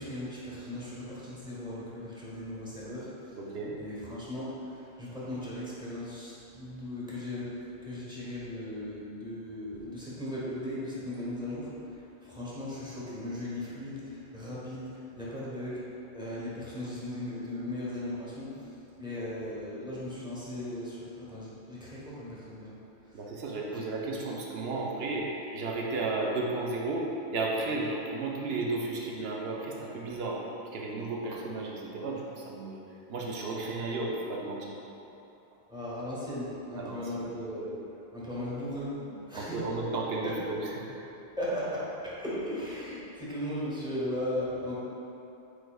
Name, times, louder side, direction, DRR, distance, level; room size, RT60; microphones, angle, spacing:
voice 1, 0.0-3.4 3.8-18.7 19.0-22.8 23.1-23.2 23.7-23.8 35.7-37.8 38.1-39.6 40.2-40.5 41.4-44.7, left 1 dB, 5° right, -9 dB, 0.9 m, -37 dB
voice 2, 3.4-3.7 23.1-30.4 30.7-32.8 33.1-34.8 36.8-37.1 39.3-40.7, right 2 dB, 70° right, -2 dB, 0.9 m, -33 dB
4.8 x 4.6 x 2.3 m, 2.9 s
omnidirectional pair, 1.1 m